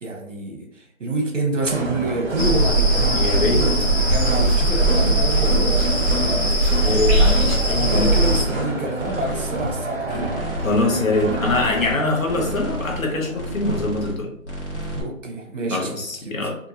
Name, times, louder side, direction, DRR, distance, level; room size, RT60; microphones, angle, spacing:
voice 1, 0.0-3.2 3.5-5.8 6.1-6.6 7.8-10.3 14.9-16.3, right 2 dB, 65° right, 2 dB, 1.1 m, -27 dB
sound 1, 1.6-13.4, right 2 dB, 45° right, 1.3 m, -29 dB
sound 2, 2.4-8.4, right 1 dB, ahead, 1.4 m, -19 dB
voice 2, 3.1-3.6 6.8-8.2 10.6-14.3 15.7-16.6, left 2 dB, 75° left, 1 dB, 1.1 m, -23 dB
sound 3, 4.8-5.4 5.7-6.5 6.8-7.6 7.9-8.7 9.0-9.8 10.1-10.9 11.2-11.9 12.3-13.1 13.3-14.2 14.4-15.0, equal, 55° left, 1.4 m, -31 dB
3.6 x 2.6 x 2.7 m, 0.66 s
hypercardioid pair, 175°, 41 cm